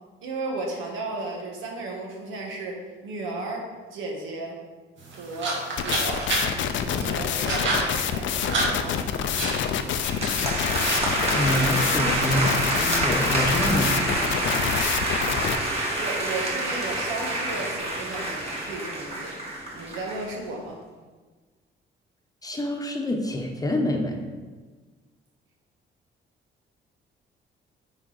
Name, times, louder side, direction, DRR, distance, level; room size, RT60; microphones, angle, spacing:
voice 1, 0.2-3.6 3.9-4.6 5.1-6.2 6.8-9.0 16.0-19.3 19.7-20.8, right 2 dB, 85° right, 1 dB, 1.4 m, -34 dB
sound 1, 5.0-12.8, right 2 dB, 70° right, 1.9 m, -32 dB
sound 2, 5.8-15.6, left 8 dB, 70° left, 0.5 m, -27 dB
sound 3, 10.0-20.3, right 1 dB, 30° right, 2.1 m, -27 dB
voice 2, 11.3-13.9 22.4-24.2, left 1 dB, 20° left, 2 dB, 0.9 m, -26 dB
8.9 x 4.0 x 4.0 m, 1.4 s
cardioid pair, 90°, 20 cm